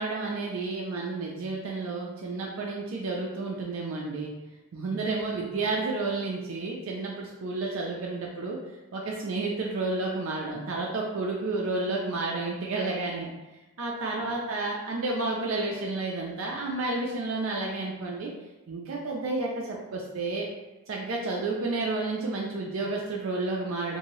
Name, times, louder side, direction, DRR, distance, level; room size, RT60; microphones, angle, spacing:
voice 1, 0.0-4.3 4.7-8.6 8.9-13.3 13.8-18.3 18.7-20.5 20.9-24.0, right 3 dB, 60° right, -2 dB, 0.4 m, -31 dB
2.7 x 2.6 x 3.0 m, 1.1 s
head